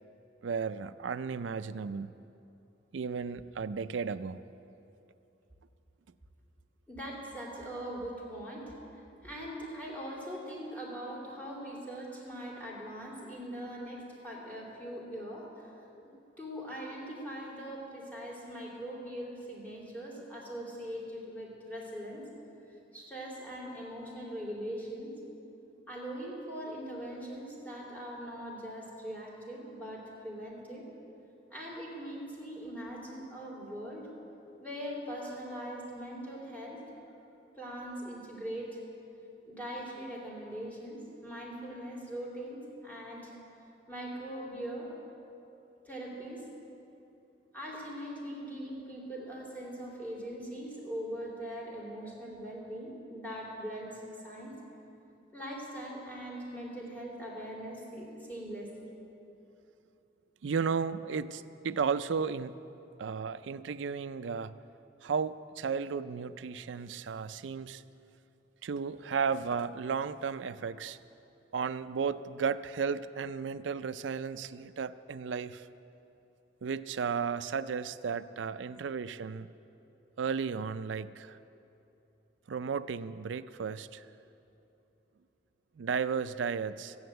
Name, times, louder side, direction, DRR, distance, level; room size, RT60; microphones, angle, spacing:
voice 1, 0.4-2.1 2.9-4.4 60.4-62.5 63.0-64.5 65.0-67.8 68.6-71.0 71.5-75.7 76.6-79.5 80.2-81.4 82.5-84.1 85.8-86.9, right 6 dB, 90° right, 13 dB, 0.4 m, -34 dB
voice 2, 6.9-8.6 8.9-15.7 16.0-22.2 22.9-25.1 25.9-30.8 31.5-34.1 34.6-36.8 37.5-38.8 39.5-43.3 43.9-44.9 45.8-46.4 47.5-54.5 55.3-58.9, equal, 10° left, -5 dB, 2.9 m, -41 dB
14.0 x 9.6 x 7.9 m, 2.9 s
head